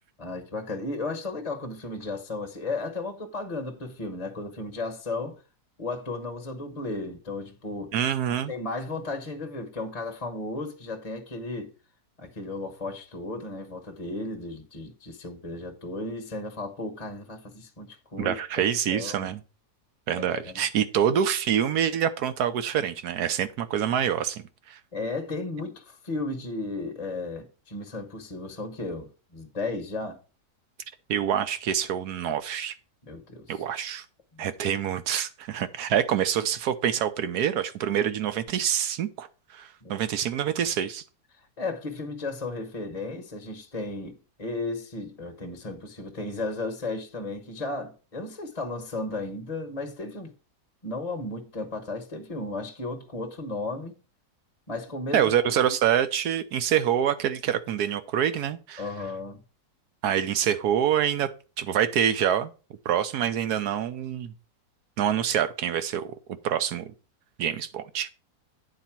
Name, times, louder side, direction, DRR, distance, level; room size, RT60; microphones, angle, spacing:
voice 1, 0.2-5.4 5.8-7.9 8.5-11.7 12.2-18.6 18.9-19.3 20.2-20.6 24.9-30.2 33.0-33.6 34.3-34.5 39.8-40.0 41.3-50.3 50.8-54.0 54.7-55.3 58.8-59.4, left 2 dB, 25° left, 1.0 m, -34 dB
voice 2, 7.9-8.5 18.2-19.4 20.1-24.8 31.1-32.7 33.5-34.0 34.4-41.0 55.1-58.8 60.0-61.3 61.6-62.5 62.8-64.3 65.0-66.9 67.4-68.1, right 9 dB, 80° right, 1.3 m, -26 dB
9.1 x 4.1 x 5.8 m
omnidirectional pair, 1.7 m